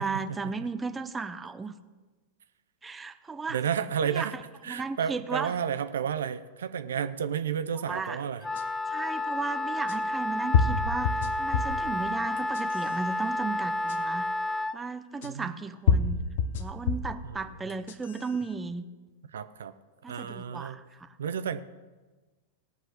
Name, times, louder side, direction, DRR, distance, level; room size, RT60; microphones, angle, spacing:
voice 1, 0.0-1.7 2.8-3.6 4.0-4.4 4.7-5.5 7.7-8.2 8.9-14.3 14.7-16.3 16.6-18.9 20.0-21.1, right 4 dB, 15° right, 10 dB, 0.8 m, -35 dB
voice 2, 3.5-4.3 4.6-8.4 15.2-15.6 17.2-17.4 19.3-19.7 20.1-20.8 21.2-21.6, right 8 dB, 70° right, 11 dB, 0.6 m, -31 dB
Wind instrument woodwind instrument, 8.4-14.8, left 2 dB, 10° left, 0.4 m, -30 dB
sound 1, 8.6-8.7 9.9-10.0 10.5-11.8 12.4-12.9 13.9-14.0 15.2-15.3 15.9-17.2 17.7-18.3, left 5 dB, 60° left, 0.9 m, -26 dB
18.0 x 6.2 x 6.4 m, 1.3 s
figure-of-eight pair, 95°, 0 cm